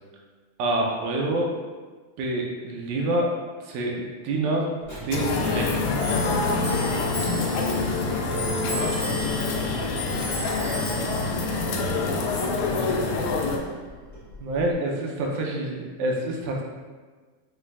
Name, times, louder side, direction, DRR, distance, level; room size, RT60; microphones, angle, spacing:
voice 1, 0.6-1.5 2.2-3.3 3.6-4.7 5.0-5.8 14.4-16.6, right 2 dB, 90° right, -1 dB, 2.0 m, -27 dB
Clock, 4.8-14.7, left 1 dB, 30° left, 0.5 m, -36 dB
sound 1, 5.1-13.6, left 3 dB, 85° left, 1.9 m, -26 dB
sound 2, 6.1-12.6, right 5 dB, 65° right, 1.7 m, -37 dB
voice 2, 8.5-11.0 11.7-13.0, left 2 dB, 70° left, -6 dB, 2.0 m, -39 dB
5.7 x 3.2 x 2.3 m, 1.4 s
omnidirectional pair, 3.3 m